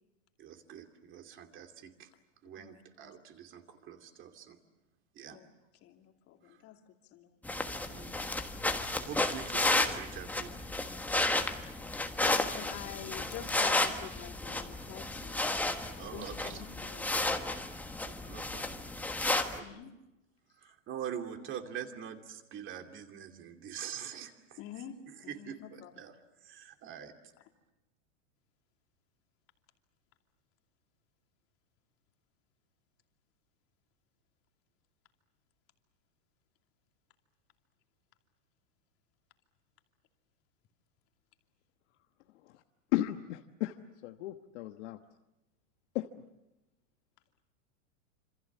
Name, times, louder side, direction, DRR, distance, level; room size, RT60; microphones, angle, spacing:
voice 1, 0.4-2.1 2.4-4.6 5.2-5.4 7.9-8.1 9.0-10.5 16.0-16.6 18.0-18.8 19.5-19.8 20.6-24.6 25.3-26.1 26.4-27.1, right 9 dB, 30° right, 5 dB, 2.7 m, -44 dB
voice 2, 2.5-3.1 5.3-5.5 5.8-6.8 7.1-7.4 7.9-8.1 11.6-11.8 12.2-17.4 19.6-19.9 20.6-20.7 24.6-25.0 25.2-25.9 27.4-27.5, left 10 dB, 35° left, 4 dB, 2.7 m, -47 dB
sound 1, 7.4-19.6, left 2 dB, 5° left, 1.4 m, -32 dB
voice 3, 42.9-43.7 44.0-45.0 45.9-46.1, left 15 dB, 60° left, 7 dB, 1.3 m, -34 dB
27.5 x 26.5 x 7.3 m, 0.95 s
supercardioid pair, 145°, 39 cm